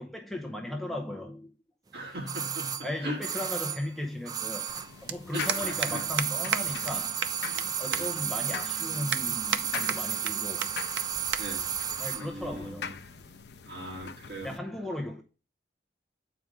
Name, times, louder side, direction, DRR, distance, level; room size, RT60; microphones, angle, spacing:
voice 1, 0.0-1.5 2.8-4.7 5.0-10.7 12.0-13.0 14.4-15.2, left 1 dB, ahead, 0.7 m, -36 dB
voice 2, 1.9-3.5 5.3-6.0 7.9-8.1 11.4-11.7 12.1-12.9 13.7-14.5, equal, 65° right, 3.3 m, -39 dB
sound 1, 2.3-5.0 5.3-12.3 12.5-12.6, right 8 dB, 20° right, 0.3 m, -33 dB
sound 2, 4.7-14.6, left 6 dB, 70° left, 0.5 m, -43 dB
sound 3, 5.1-5.2 5.5-5.9 6.2-6.3 6.5-6.6 6.9-7.0 7.2-7.7 7.9-8.0 8.5-8.6 9.1-9.6 9.9-10.3 10.6-10.7 11.0-11.1 11.3-11.4 11.7-12.0 12.8-13.0, right 7 dB, 90° right, 0.6 m, -30 dB
7.8 x 4.8 x 3.7 m
head